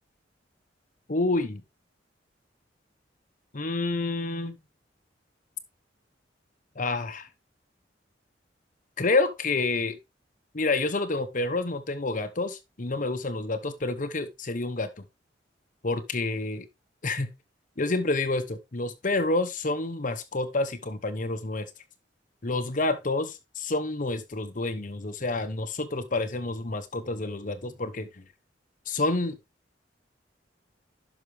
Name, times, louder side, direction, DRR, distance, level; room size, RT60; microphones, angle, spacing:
voice 1, 1.1-1.6 3.5-4.6 6.8-7.3 9.0-10.0 10.5-15.0 15.8-16.7 17.0-17.3 17.8-21.7 22.4-28.1 28.9-29.4, left 2 dB, 45° left, 0.9 m, -28 dB
11.5 x 6.0 x 3.3 m
head